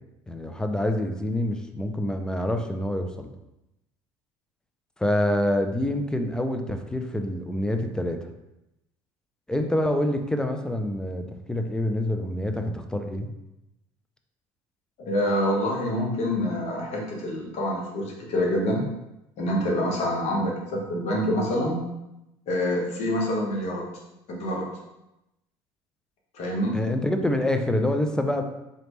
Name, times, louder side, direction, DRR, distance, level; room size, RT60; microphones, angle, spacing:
voice 1, 0.3-3.3 5.0-8.2 9.5-13.3 26.7-28.4, left 1 dB, 5° left, 6 dB, 0.5 m, -26 dB
voice 2, 15.0-18.8 19.4-21.9 22.5-23.9 24.3-24.7 26.3-26.8, equal, 60° left, -2 dB, 1.3 m, -26 dB
4.0 x 3.2 x 3.1 m, 0.91 s
supercardioid pair, 90°, 12 cm